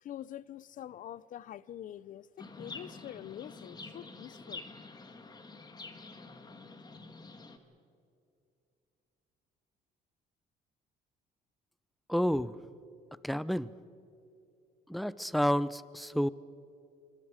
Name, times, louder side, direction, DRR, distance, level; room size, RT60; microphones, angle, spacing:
voice 1, 0.0-4.6, left 11 dB, 50° left, 0.6 m, -45 dB
Chirp tweet, 2.4-7.6, left 3 dB, 25° left, 1.7 m, -48 dB
voice 2, 12.1-12.6 13.2-13.7 14.9-16.3, equal, ahead, 0.5 m, -30 dB
25.5 x 25.0 x 5.1 m
cardioid pair, 110°, 17 cm